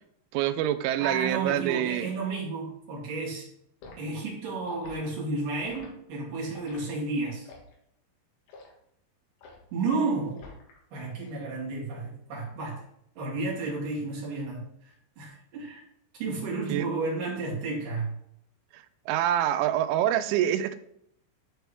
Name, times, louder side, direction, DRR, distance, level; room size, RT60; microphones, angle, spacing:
voice 1, 0.3-2.1 16.7-16.9 18.7-20.8, right 11 dB, 85° right, 11 dB, 3.0 m, -26 dB
voice 2, 1.0-3.5 4.0-7.5 9.7-10.4 10.9-12.9 13.2-15.8 16.1-18.2, right 3 dB, 50° right, -5 dB, 3.7 m, -32 dB
Liquid, 3.8-4.0 4.6-5.0 5.6-5.9 6.5-6.8 7.4-7.7 8.5-8.7 9.4-9.7 10.4-10.8 11.1-11.4, left 4 dB, 70° left, 3.6 m, -47 dB
11.5 x 4.5 x 3.3 m, 0.71 s
omnidirectional pair, 5.4 m